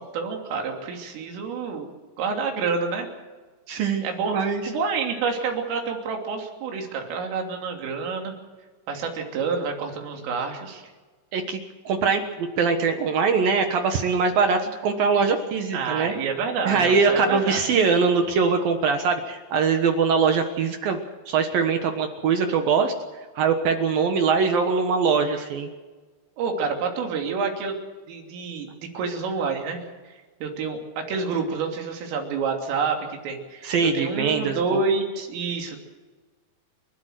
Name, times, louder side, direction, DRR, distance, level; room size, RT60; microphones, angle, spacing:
voice 1, 0.0-1.9 2.2-3.1 4.0-4.4 4.7-8.3 8.9-10.8 15.7-17.6 26.4-27.7 28.1-28.7 29.0-29.8 30.4-33.7 33.9-35.9, right 5 dB, 85° right, 2 dB, 5.6 m, -28 dB
voice 2, 3.7-4.7 11.3-11.6 11.9-16.1 16.7-21.0 21.3-22.9 23.4-25.7 33.6-34.8, right 5 dB, 65° right, 6 dB, 2.5 m, -22 dB
30.0 x 12.5 x 7.7 m, 1.3 s
omnidirectional pair, 5.7 m